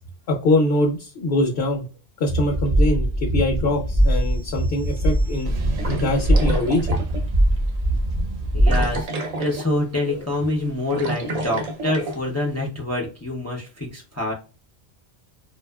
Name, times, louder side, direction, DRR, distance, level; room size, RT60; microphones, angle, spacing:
voice 1, 0.3-1.9 2.2-5.5 5.9-7.0 10.1-10.2, left 2 dB, 75° left, 1 dB, 0.8 m, -23 dB
sound 1, 2.3-9.0, right 1 dB, 35° right, 0.9 m, -21 dB
sound 2, 3.9-8.2, right 1 dB, 80° right, 0.8 m, -35 dB
sound 3, 5.8-7.3 7.7-7.8 8.7-9.8 10.1-10.3 10.7-12.2, right 1 dB, 50° right, 0.5 m, -30 dB
voice 2, 8.5-14.3, left 1 dB, 25° left, -1 dB, 0.3 m, -26 dB
2.6 x 2.3 x 2.2 m, 0.34 s
omnidirectional pair, 1.1 m